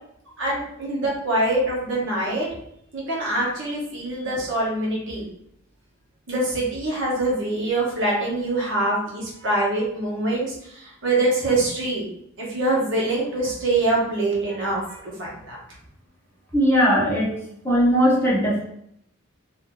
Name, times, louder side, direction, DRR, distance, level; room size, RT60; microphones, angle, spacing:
voice 1, 0.4-2.5 2.9-5.2 6.3-12.0 12.4-15.6, right 2 dB, 65° right, -5 dB, 1.3 m, -24 dB
voice 2, 16.5-17.3 17.6-18.6, equal, 10° left, -6 dB, 1.0 m, -19 dB
2.8 x 2.8 x 3.7 m, 0.73 s
head